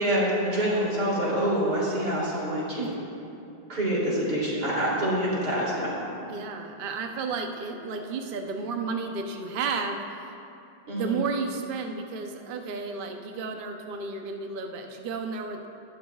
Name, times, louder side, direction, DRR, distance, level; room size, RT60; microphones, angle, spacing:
voice 1, 0.0-3.0 3.7-6.0 10.9-11.2, equal, 60° right, -6 dB, 3.5 m, -26 dB
voice 2, 6.3-10.0 10.9-15.7, right 4 dB, 85° right, 4 dB, 0.4 m, -32 dB
17.5 x 12.0 x 2.3 m, 2.6 s
omnidirectional pair, 2.0 m